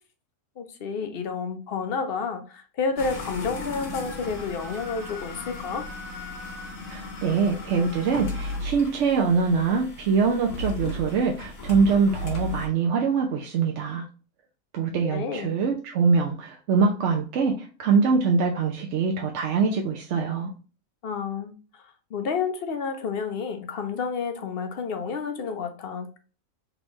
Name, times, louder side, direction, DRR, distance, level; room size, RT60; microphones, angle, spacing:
voice 1, 0.6-5.9 15.1-15.5 21.0-26.1, left 5 dB, 55° left, 0.8 m, -30 dB
sound 1, 3.0-12.7, left 2 dB, 90° left, 1.6 m, -36 dB
voice 2, 6.9-14.0 14.7-20.5, right 5 dB, 65° right, 0.9 m, -23 dB
4.0 x 3.4 x 3.0 m
omnidirectional pair, 1.4 m